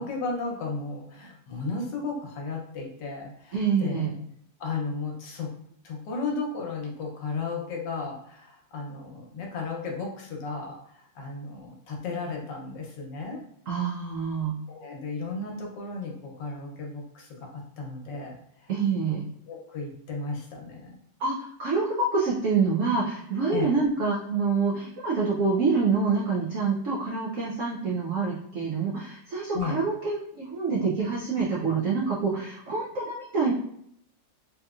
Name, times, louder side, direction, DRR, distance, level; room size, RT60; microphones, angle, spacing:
voice 1, 0.0-4.1 4.6-5.5 5.8-13.4 14.7-18.4 19.5-21.0 23.5-23.7 29.5-29.8, left 4 dB, 75° left, 0 dB, 1.3 m, -34 dB
voice 2, 3.5-4.1 13.7-14.6 18.7-19.2 21.2-33.5, right 4 dB, 85° right, -4 dB, 0.7 m, -26 dB
3.5 x 2.7 x 2.4 m, 0.70 s
omnidirectional pair, 2.0 m